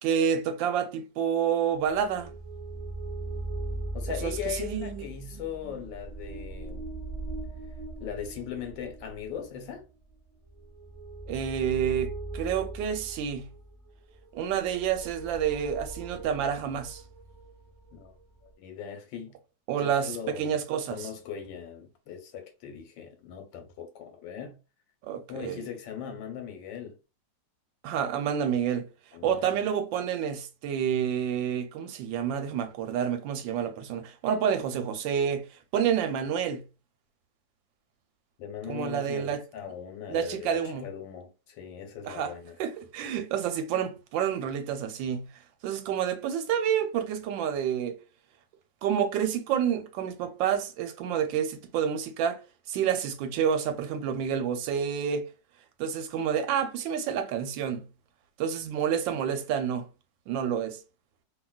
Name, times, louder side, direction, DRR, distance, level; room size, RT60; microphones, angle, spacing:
voice 1, 0.0-2.3 4.2-5.7 11.3-13.5 14.3-17.0 19.7-21.1 25.0-25.6 27.8-28.9 29.2-35.5 35.7-36.7 38.7-39.4 40.1-40.9 42.1-42.3 42.6-45.3 45.6-48.0 48.8-52.4 52.7-55.3 55.8-57.9 58.4-59.9 60.3-60.8, right 8 dB, 90° right, 1.3 m, -29 dB
sound 1, 1.9-18.5, right 2 dB, 10° right, 1.2 m, -40 dB
voice 2, 3.9-6.9 8.0-9.8 17.9-18.1 18.6-19.4 19.8-20.6 20.9-24.6 25.3-27.0 29.1-29.6 38.4-42.6, left 8 dB, 80° left, 1.5 m, -39 dB
2.8 x 2.7 x 2.3 m
omnidirectional pair, 2.0 m